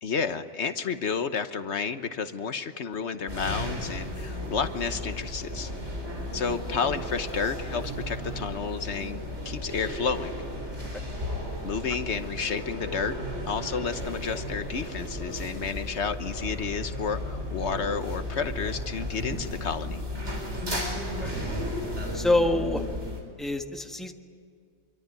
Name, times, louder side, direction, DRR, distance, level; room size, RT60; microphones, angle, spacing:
voice 1, 0.0-5.7 6.3-10.3 11.6-13.2 13.5-20.0, left 6 dB, 75° left, 10 dB, 1.3 m, -31 dB
sound 1, 3.3-23.2, left 1 dB, 80° right, 5.0 m, -34 dB
voice 2, 22.1-22.8 23.4-24.1, left 2 dB, ahead, 4 dB, 1.4 m, -26 dB
25.5 x 23.5 x 9.6 m, 2.2 s
omnidirectional pair, 1.2 m